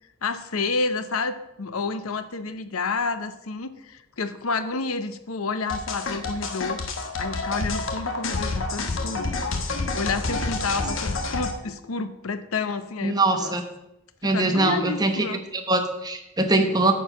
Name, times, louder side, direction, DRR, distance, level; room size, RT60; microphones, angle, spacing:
voice 1, 0.2-6.8 7.2-9.3 9.9-13.6 14.2-15.4, left 4 dB, 75° left, 11 dB, 0.7 m, -30 dB
sound 1, 5.7-11.5, left 3 dB, 60° left, 1.1 m, -28 dB
voice 2, 13.0-13.6 14.2-15.3 15.5-16.9, right 2 dB, 20° right, 5 dB, 0.9 m, -22 dB
9.2 x 4.7 x 6.9 m, 0.87 s
head